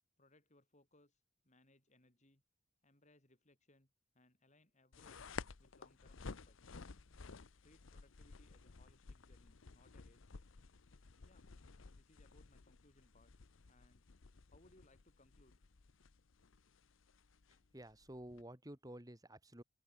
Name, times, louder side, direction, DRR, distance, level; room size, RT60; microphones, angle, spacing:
voice 1, 0.2-2.4 2.8-3.9 4.1-6.8 7.6-10.4 11.2-11.5 11.9-13.3 13.7-14.0 14.5-15.7, left 2 dB, 35° left, 4.7 m, -70 dB
sound 1, 4.9-18.4, left 4 dB, 85° left, 0.8 m, -54 dB
voice 2, 17.7-19.6, right 1 dB, 20° right, 2.9 m, -52 dB
open air
head